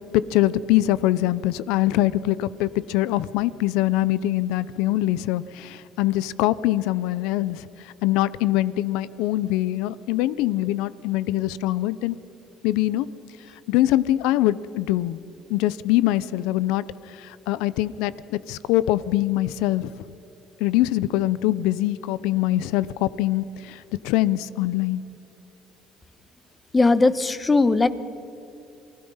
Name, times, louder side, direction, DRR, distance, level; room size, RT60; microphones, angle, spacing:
voice 1, 0.1-12.2 12.6-13.1 13.7-15.2 15.5-19.9 20.6-25.0, left 15 dB, 85° left, 18 dB, 0.7 m, -23 dB
voice 2, 26.7-27.9, left 3 dB, 20° left, 14 dB, 1.2 m, -18 dB
28.5 x 20.0 x 5.7 m, 2.7 s
cardioid pair, 95°, 0 cm